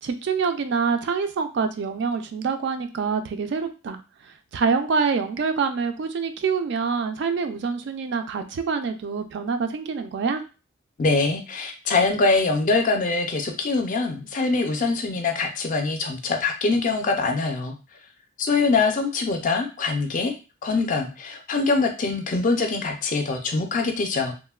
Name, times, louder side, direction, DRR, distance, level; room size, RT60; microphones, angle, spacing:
voice 1, 0.0-10.4, right 5 dB, 55° right, 8 dB, 0.3 m, -26 dB
voice 2, 11.0-17.7 18.4-20.3 20.6-24.3, left 3 dB, 40° left, 4 dB, 0.4 m, -23 dB
3.0 x 2.1 x 2.3 m, 0.32 s
head